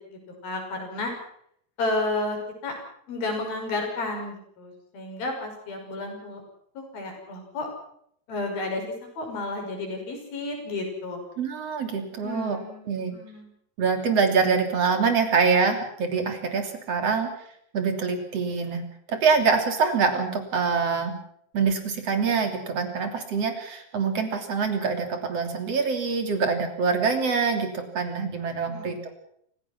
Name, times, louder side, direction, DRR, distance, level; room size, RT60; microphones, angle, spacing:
voice 1, 0.1-1.1 1.8-2.4 2.6-2.7 3.1-6.4 6.8-7.7 8.3-8.8 9.2-11.2 12.2-13.5 28.7-29.0, left 2 dB, 80° left, 3 dB, 7.6 m, -32 dB
voice 2, 11.4-12.6 12.9-13.1 13.8-17.3 17.7-18.8 19.1-21.1 21.5-29.0, right 5 dB, 45° right, 5 dB, 3.9 m, -25 dB
28.5 x 16.5 x 6.0 m, 0.68 s
omnidirectional pair, 4.1 m